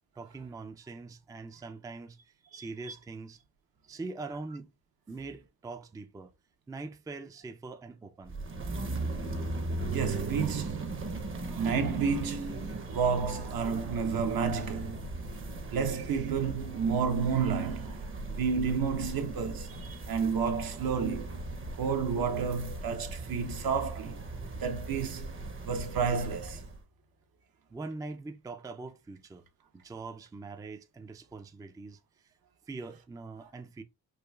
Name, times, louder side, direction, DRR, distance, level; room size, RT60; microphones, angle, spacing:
voice 1, 0.2-3.4 3.9-4.7 5.1-6.3 6.7-8.4 27.7-29.4 29.7-32.0 32.7-33.8, right 3 dB, 10° right, 0.4 m, -43 dB
sound 1, 8.2-26.8, right 2 dB, 35° right, 0.7 m, -38 dB
voice 2, 9.8-11.0 11.5-15.2 15.6-18.1 18.4-21.4 21.7-24.2 24.5-25.3 25.6-26.6, right 6 dB, 70° right, 0.9 m, -31 dB
4.8 x 2.4 x 2.2 m
cardioid pair, 100°, 37 cm